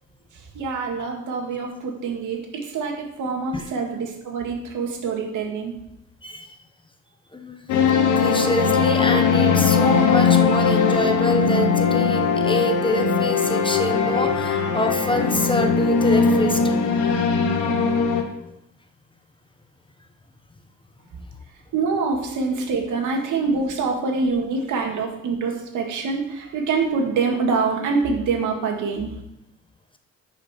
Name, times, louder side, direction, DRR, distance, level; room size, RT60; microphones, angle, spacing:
voice 1, 0.3-5.7 21.7-29.2, right 4 dB, 80° right, 1 dB, 2.2 m, -25 dB
voice 2, 6.2-6.6 7.3-7.7 8.1-16.8, left 1 dB, 15° left, 6 dB, 1.1 m, -26 dB
sound 1, 7.7-18.2, left 5 dB, 85° left, 1.4 m, -20 dB
11.0 x 5.8 x 4.4 m, 0.86 s
cardioid pair, 90°, 30 cm